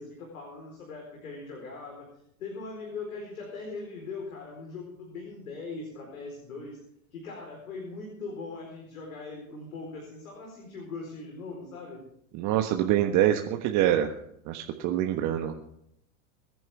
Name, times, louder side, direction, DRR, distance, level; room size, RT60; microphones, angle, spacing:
voice 1, 0.0-2.1 2.4-6.8 7.1-12.0, left 3 dB, 80° left, 0 dB, 4.5 m, -40 dB
voice 2, 12.3-14.1 14.5-15.8, right 11 dB, 45° right, 4 dB, 1.4 m, -25 dB
23.0 x 11.0 x 3.6 m, 0.74 s
hypercardioid pair, 100°, 42 cm